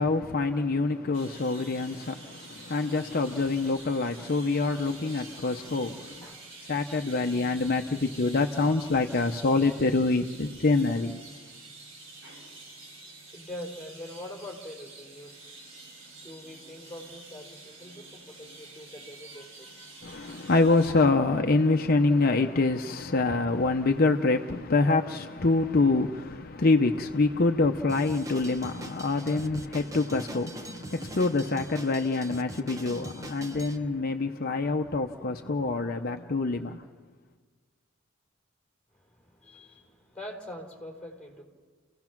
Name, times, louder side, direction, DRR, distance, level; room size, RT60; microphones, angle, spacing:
voice 1, 0.0-6.2 6.7-11.2 20.0-36.8, left 3 dB, 50° left, 0.7 m, -26 dB
sound 1, 1.1-20.9, right 3 dB, 85° right, 6.5 m, -48 dB
voice 2, 6.2-6.6 12.3-12.5 13.3-15.3 15.9-16.0 16.2-20.3 38.9-41.4, left 1 dB, 5° left, 4.0 m, -44 dB
Drum kit, 27.9-33.8, right 1 dB, 15° right, 0.9 m, -42 dB
29.5 x 17.0 x 6.0 m
head